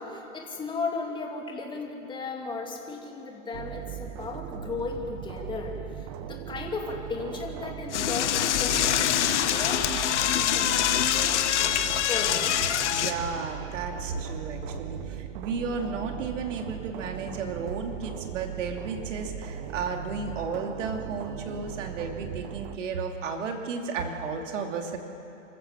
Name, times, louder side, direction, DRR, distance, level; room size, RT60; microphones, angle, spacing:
voice 1, 0.0-12.6, left 4 dB, 10° left, 1 dB, 2.4 m, -36 dB
sound 1, 3.5-22.8, right 10 dB, 40° right, 0.9 m, -39 dB
Door / Toilet flush, 7.9-13.1, left 11 dB, 60° left, 1.3 m, -25 dB
voice 2, 12.9-25.0, right 5 dB, 65° right, 3 dB, 3.0 m, -33 dB
25.5 x 15.0 x 7.4 m, 3.0 s
hypercardioid pair, 130°, 40 cm